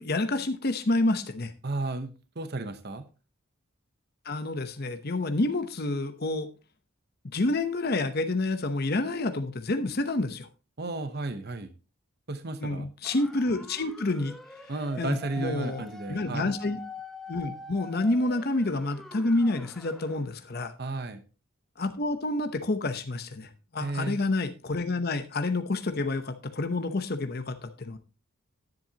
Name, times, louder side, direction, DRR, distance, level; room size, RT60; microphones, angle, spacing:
voice 1, 0.0-1.5 4.2-6.5 7.2-10.5 12.6-14.3 15.0-16.8 17.3-20.7 21.8-28.0, left 2 dB, 45° left, 0.9 m, -28 dB
voice 2, 1.6-3.0 10.8-11.7 12.3-12.9 14.7-16.5 20.8-21.2 23.8-24.2, right 2 dB, 50° right, 0.9 m, -33 dB
sound 1, 13.0-20.2, left 2 dB, ahead, 0.9 m, -45 dB
10.5 x 10.5 x 2.9 m
head